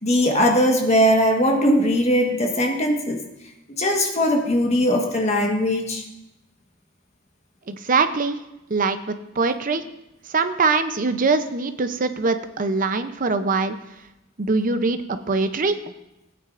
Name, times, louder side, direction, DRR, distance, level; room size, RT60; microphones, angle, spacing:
voice 1, 0.0-3.2 3.8-6.0, equal, 30° left, 1 dB, 1.4 m, -20 dB
voice 2, 7.7-8.4 8.7-9.8 10.3-13.8 14.4-15.8, right 4 dB, 40° right, 9 dB, 0.6 m, -22 dB
17.0 x 9.3 x 2.5 m, 0.91 s
head